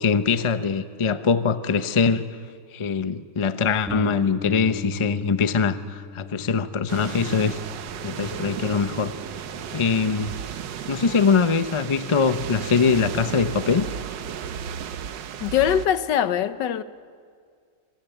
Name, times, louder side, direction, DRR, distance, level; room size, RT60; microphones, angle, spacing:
voice 1, 0.0-2.3 2.7-7.6 8.0-9.1 9.7-10.3 10.9-13.9, left 5 dB, 35° left, 0.5 m, -22 dB
Bass guitar, 3.9-10.1, left 4 dB, ahead, 1.6 m, -38 dB
sound 1, 6.9-15.9, right 8 dB, 90° right, 1.6 m, -34 dB
voice 2, 15.4-16.8, left 9 dB, 80° left, 1.5 m, -22 dB
26.5 x 22.0 x 9.2 m
omnidirectional pair, 1.9 m